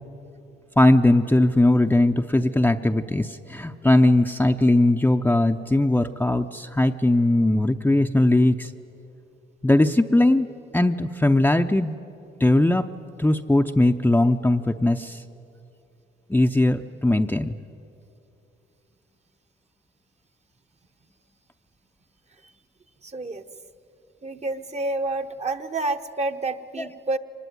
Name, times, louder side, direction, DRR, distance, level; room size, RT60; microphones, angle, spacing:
voice 1, 0.8-8.7 9.6-10.5 10.7-11.9 12.4-12.9 13.2-15.2 16.3-17.6 26.8-26.9, left 1 dB, 10° left, 6 dB, 0.6 m, -19 dB
voice 2, 23.0-23.4 24.2-27.2, right 2 dB, 35° right, 8 dB, 1.1 m, -29 dB
24.0 x 20.0 x 9.5 m, 2.8 s
cardioid pair, 90°, 20 cm